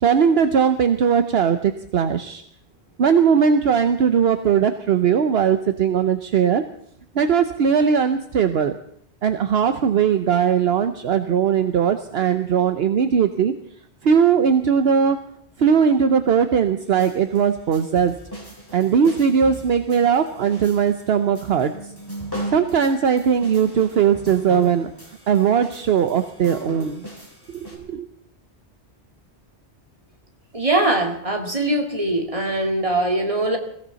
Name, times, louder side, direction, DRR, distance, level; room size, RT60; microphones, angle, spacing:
voice 1, 0.0-2.4 3.0-6.6 7.1-8.8 9.2-13.5 14.0-15.2 15.6-18.2 18.7-21.7 22.5-24.9 25.3-27.0 27.5-28.1, right 7 dB, 65° right, 9 dB, 1.0 m, -19 dB
sound 1, 16.8-27.8, equal, 20° left, 3.9 m, -38 dB
voice 2, 30.5-33.6, right 2 dB, 30° right, 2 dB, 2.4 m, -22 dB
21.5 x 16.0 x 4.0 m, 0.66 s
omnidirectional pair, 1.1 m